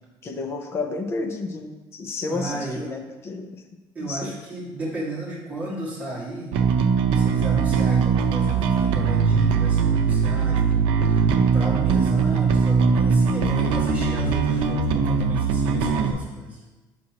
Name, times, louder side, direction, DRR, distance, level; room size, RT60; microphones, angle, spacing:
voice 1, 0.2-3.6 4.0-4.3, left 3 dB, 30° left, 5 dB, 0.6 m, -31 dB
voice 2, 2.3-2.9 3.9-6.5 7.1-11.3 11.5-16.6, right 2 dB, 15° right, -6 dB, 1.7 m, -33 dB
Bass guitar, 6.5-16.1, right 5 dB, 80° right, 0.6 m, -21 dB
7.6 x 5.9 x 2.9 m, 1.2 s
cardioid pair, 175°, 9 cm